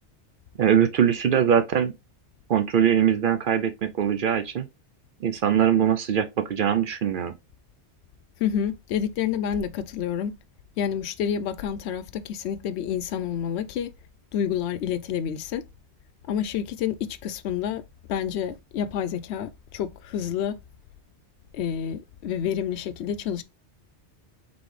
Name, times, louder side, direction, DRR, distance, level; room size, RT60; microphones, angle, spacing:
voice 1, 0.6-1.9 2.5-4.7 5.2-7.3, right 8 dB, 60° right, 0.6 m, -22 dB
voice 2, 8.4-10.3 10.8-13.9 14.3-15.6 16.3-17.8 18.1-20.5 21.5-23.4, left 8 dB, 75° left, 0.8 m, -28 dB
3.9 x 3.8 x 3.1 m
omnidirectional pair, 1.2 m